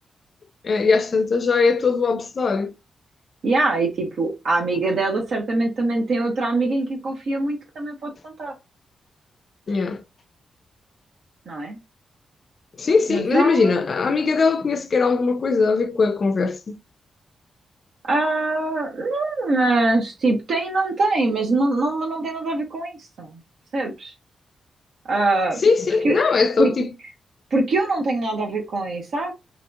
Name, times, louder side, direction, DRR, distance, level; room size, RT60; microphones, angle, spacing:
voice 1, 0.6-2.7 9.7-10.0 12.8-16.8 25.6-26.9, left 4 dB, 45° left, 0.4 m, -20 dB
voice 2, 3.4-8.5 11.5-11.8 13.1-13.8 18.0-23.4 23.7-24.1 25.0-25.6 26.0-26.2 26.6-26.7 27.5-29.3, right 2 dB, 70° right, 1.0 m, -23 dB
2.8 x 2.8 x 2.3 m
cardioid pair, 110°, 0 cm